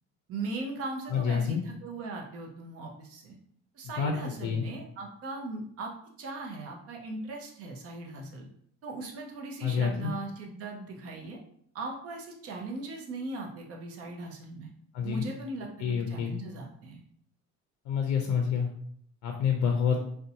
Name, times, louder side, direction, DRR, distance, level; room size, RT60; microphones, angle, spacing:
voice 1, 0.3-3.4 3.7-5.9 6.2-8.5 8.8-11.4 11.7-14.7 15.0-17.0, right 2 dB, 55° right, 1 dB, 0.6 m, -39 dB
voice 2, 1.1-1.6 4.0-4.7 9.6-10.1 14.9-15.2 15.8-16.3 17.9-18.7 19.2-20.0, left 6 dB, 70° left, 2 dB, 0.5 m, -28 dB
2.5 x 2.1 x 2.7 m, 0.65 s
cardioid pair, 140°, 29 cm